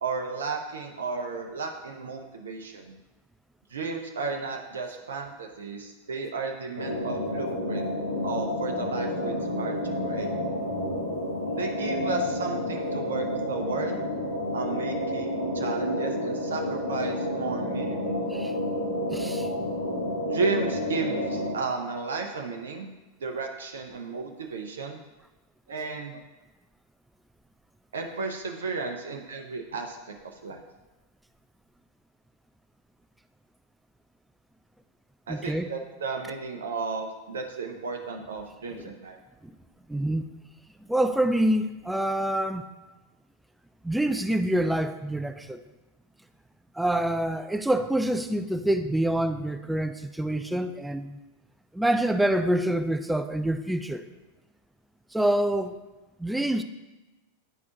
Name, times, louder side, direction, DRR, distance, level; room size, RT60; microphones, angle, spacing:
voice 1, 0.0-2.9 3.7-7.9 8.2-10.3 11.6-14.0 14.5-18.3 20.2-22.9 23.2-25.0 25.7-26.2 27.9-30.0 30.2-30.6 35.3-39.2, right 4 dB, 65° right, 3 dB, 0.5 m, -34 dB
sound 1, 6.8-21.5, left 1 dB, 75° left, 1.1 m, -30 dB
voice 2, 19.1-19.5 35.3-35.7 38.8-38.9 39.4-39.5 39.9-40.3 40.8-42.7 43.8-45.6 46.7-51.2 51.7-54.1 55.1-55.8 56.2-56.6, right 1 dB, 5° right, 8 dB, 0.3 m, -26 dB
9.9 x 4.2 x 2.8 m, 1.1 s
figure-of-eight pair, 90°, 0 cm